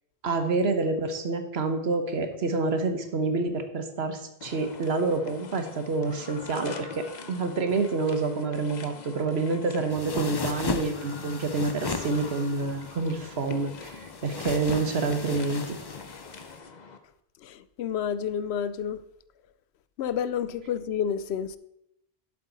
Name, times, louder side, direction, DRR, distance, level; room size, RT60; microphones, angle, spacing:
voice 1, 0.2-15.8, right 3 dB, 75° right, 1.4 m, -28 dB
sound 1, 4.4-17.0, left 5 dB, 45° left, 0.9 m, -44 dB
sound 2, 9.9-16.5, left 4 dB, 30° left, 0.5 m, -36 dB
voice 2, 17.4-19.0 20.0-21.6, left 8 dB, 85° left, 0.9 m, -30 dB
11.5 x 7.6 x 4.0 m
omnidirectional pair, 1.1 m